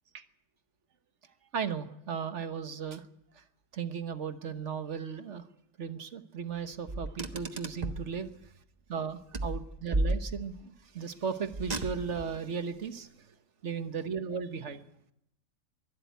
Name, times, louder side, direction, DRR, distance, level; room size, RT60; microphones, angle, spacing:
voice 1, 1.5-3.0 3.3-3.4 3.7-5.4 5.8-8.3 8.9-13.3 13.6-14.8, right 6 dB, 45° right, 10 dB, 1.4 m, -36 dB
Car, 6.9-8.1 9.3-10.7 11.5-12.3, right 2 dB, 30° right, 1.0 m, -33 dB
22.5 x 12.5 x 9.4 m, 0.76 s
omnidirectional pair, 1.9 m